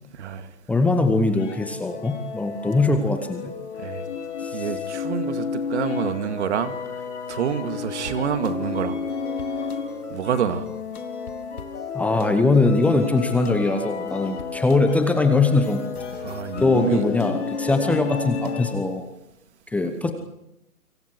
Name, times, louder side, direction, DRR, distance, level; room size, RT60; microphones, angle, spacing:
voice 1, 0.2-0.5 3.8-4.0 4.5-6.7 7.3-9.0 10.1-10.7 16.2-17.0 20.0-20.1, right 8 dB, 50° right, 8 dB, 2.4 m, -27 dB
voice 2, 0.7-3.5 4.4-4.6 11.9-15.8 16.6-19.0 19.7-20.1, left 3 dB, 5° left, 7 dB, 1.0 m, -21 dB
sound 1, 1.3-19.0, left 5 dB, 50° left, 5.3 m, -32 dB
sound 2, 8.4-18.6, left 5 dB, 80° left, 1.9 m, -38 dB
29.0 x 25.5 x 4.7 m, 0.87 s
figure-of-eight pair, 135°, 44 cm